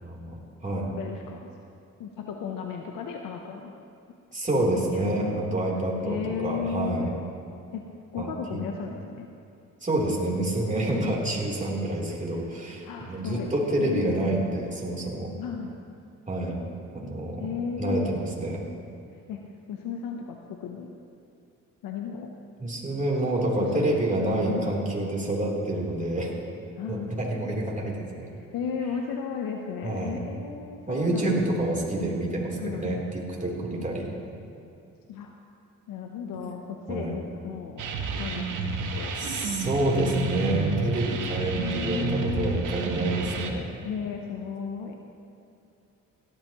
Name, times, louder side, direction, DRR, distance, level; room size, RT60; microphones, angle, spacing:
voice 1, 0.0-0.9 4.3-7.1 8.2-8.6 9.8-15.3 16.3-16.5 16.9-17.5 17.8-18.6 22.6-26.3 26.9-28.3 29.8-30.2 30.9-33.0 33.4-34.1 36.9-37.1 39.2-43.7, right 1 dB, 25° right, -3 dB, 3.3 m, -28 dB
voice 2, 1.0-1.5 2.0-3.7 4.9-5.6 6.0-7.1 7.7-7.9 8.1-9.3 10.9-11.2 12.8-13.5 13.8-14.3 15.4-15.8 17.4-18.2 19.3-19.4 19.7-20.9 21.8-22.3 23.6-24.0 24.5-24.8 26.8-27.1 28.3-31.8 32.6-33.0 35.1-35.3 35.9-37.8 38.2-38.6 38.9-39.1 41.5-42.6 43.8-44.9, left 6 dB, 85° left, 2 dB, 0.8 m, -34 dB
sound 1, 37.8-43.5, right 4 dB, 65° right, 1.2 m, -30 dB
17.5 x 12.5 x 3.0 m, 2.6 s
cardioid pair, 70°, 33 cm